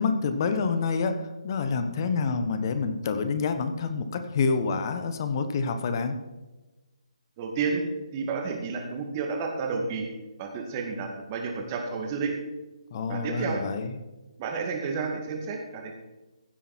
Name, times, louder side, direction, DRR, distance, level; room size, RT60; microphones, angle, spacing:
voice 1, 0.0-6.1 12.9-13.9, left 4 dB, 40° left, 9 dB, 1.2 m, -27 dB
voice 2, 7.4-7.8 8.1-10.1 10.4-12.3 13.1-13.6 14.4-15.9, right 5 dB, 30° right, 2 dB, 2.5 m, -31 dB
15.5 x 8.5 x 4.5 m, 1.1 s
figure-of-eight pair, 145°, 3 cm